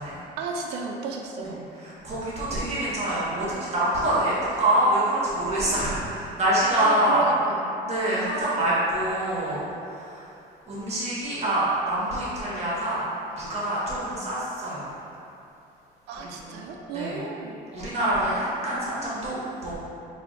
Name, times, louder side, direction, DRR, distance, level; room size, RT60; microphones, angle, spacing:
voice 1, 0.4-1.6 6.8-7.8 8.1-8.4 16.1-17.6, right 5 dB, 85° right, 2 dB, 0.5 m, -33 dB
voice 2, 1.8-7.3 7.8-10.3 10.7-14.9 16.2-16.6 16.9-17.2 17.7-19.8, right 1 dB, 40° right, -8 dB, 1.3 m, -26 dB
4.0 x 2.7 x 3.3 m, 2.8 s
cardioid pair, 110°, 17 cm